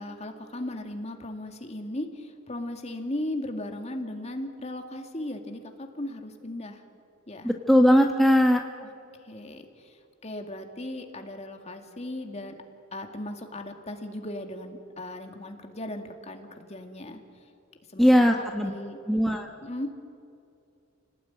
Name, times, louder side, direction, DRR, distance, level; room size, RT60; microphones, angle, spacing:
voice 1, 0.0-6.8 7.3-7.5 9.2-12.6 12.9-17.2 17.9-19.0 19.6-19.9, left 1 dB, 30° left, 5 dB, 2.3 m, -37 dB
voice 2, 7.4-8.6 18.0-18.7 19.1-19.5, equal, ahead, 2 dB, 1.3 m, -19 dB
29.5 x 19.0 x 9.6 m, 2.5 s
head